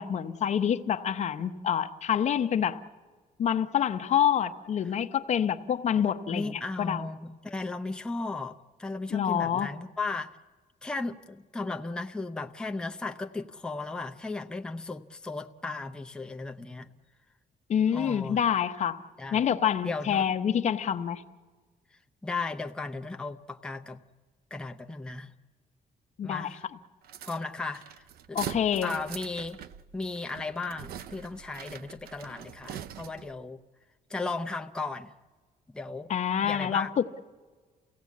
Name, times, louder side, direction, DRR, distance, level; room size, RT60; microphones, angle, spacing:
voice 1, 0.0-2.8 3.4-7.0 9.1-9.7 17.7-19.0 19.3-21.2 26.2-26.6 28.3-28.9 36.1-37.2, left 8 dB, 50° left, 10 dB, 0.8 m, -27 dB
voice 2, 6.0-10.4 10.8-16.9 17.9-18.4 19.2-19.5 19.8-20.2 22.2-24.0 24.5-25.3 26.2-26.6 27.2-28.4 28.8-29.6 29.9-33.6 34.1-35.1 35.7-36.1 36.4-36.9, left 3 dB, 5° left, 4 dB, 0.6 m, -36 dB
sound 1, 27.0-33.4, right 9 dB, 85° right, 0.7 m, -43 dB
28.5 x 16.5 x 8.4 m, 1.5 s
cardioid pair, 145°, 15 cm